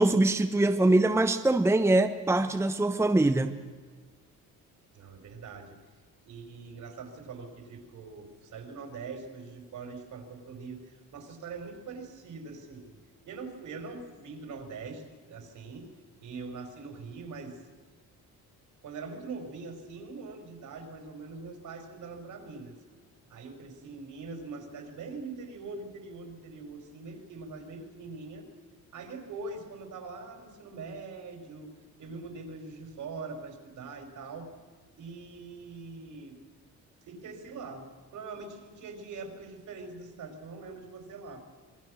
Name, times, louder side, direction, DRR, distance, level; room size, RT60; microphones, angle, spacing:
voice 1, 0.0-3.6, right 2 dB, 10° right, 0.9 m, -23 dB
voice 2, 4.9-5.8 6.2-12.9 13.3-15.9 16.2-17.6 18.8-22.7 23.3-28.5 28.9-31.7 32.0-34.5 35.0-36.3 37.1-41.5, right 4 dB, 60° right, 4.7 m, -43 dB
27.0 x 21.0 x 6.4 m
cardioid pair, 135°, 34 cm